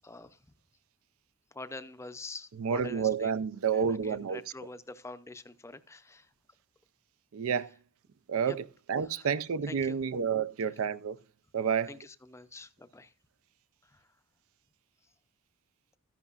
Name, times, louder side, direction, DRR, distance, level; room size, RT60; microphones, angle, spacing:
voice 1, 0.0-0.4 1.5-3.3 3.7-6.3 8.5-8.6 9.0-9.3 9.7-10.0 11.9-13.1 13.8-14.1, left 2 dB, 15° left, 0.5 m, -46 dB
voice 2, 2.6-4.4 7.3-7.7 8.3-11.2 11.5-11.9, right 6 dB, 70° right, 0.4 m, -30 dB
13.5 x 11.0 x 2.4 m
head